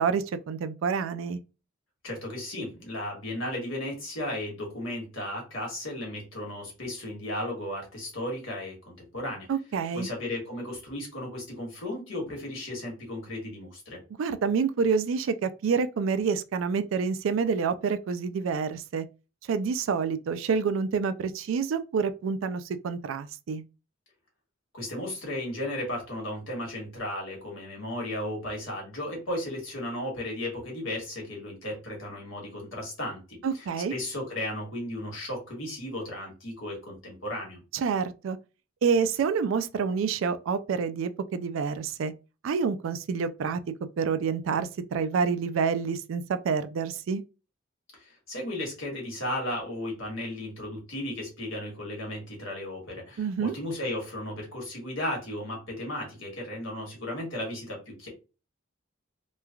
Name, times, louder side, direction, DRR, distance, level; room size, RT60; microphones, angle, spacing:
voice 1, 0.0-1.4 9.5-10.1 14.2-19.1 19.5-23.6 33.4-33.9 37.7-38.4 38.8-42.1 42.4-43.6 44.0-47.2 53.2-53.5, right 5 dB, 75° right, 0.3 m, -28 dB
voice 2, 2.0-9.5 9.9-14.0 24.7-37.6 47.9-58.1, left 1 dB, 75° left, 1.4 m, -35 dB
3.1 x 2.2 x 2.3 m
head